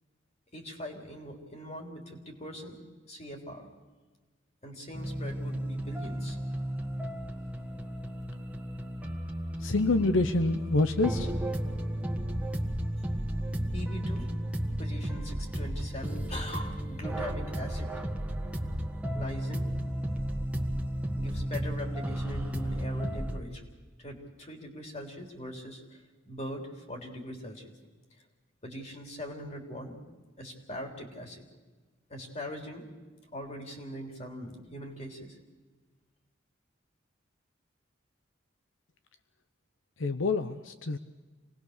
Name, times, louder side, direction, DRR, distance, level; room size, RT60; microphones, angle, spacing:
voice 1, 0.5-2.8 3.1-3.7 4.6-6.4 13.7-14.3 14.8-17.9 19.1-19.7 21.1-23.6 24.0-26.0 26.3-27.7 28.6-30.0 30.4-31.4 32.1-32.9 33.3-35.4, equal, 35° left, 2 dB, 3.7 m, -41 dB
sound 1, 4.9-23.4, equal, 5° right, 1.6 m, -33 dB
voice 2, 9.6-11.3 40.0-41.0, left 2 dB, 80° left, 10 dB, 0.9 m, -27 dB
27.0 x 19.5 x 6.7 m, 1.3 s
head